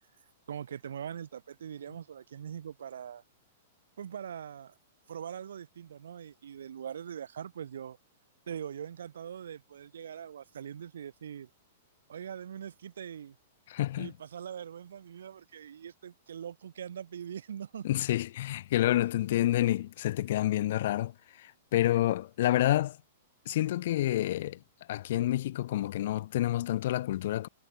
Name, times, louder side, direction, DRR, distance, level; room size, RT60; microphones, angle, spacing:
voice 1, 0.5-3.2 4.0-4.7 5.1-8.0 8.5-11.5 12.1-13.4 14.0-17.9, right 8 dB, 85° right, 1.1 m, -42 dB
voice 2, 13.7-14.1 17.8-21.1 21.7-22.9 23.5-24.6 24.9-27.5, left 14 dB, 60° left, 0.4 m, -28 dB
hypercardioid pair, 145°, 0 cm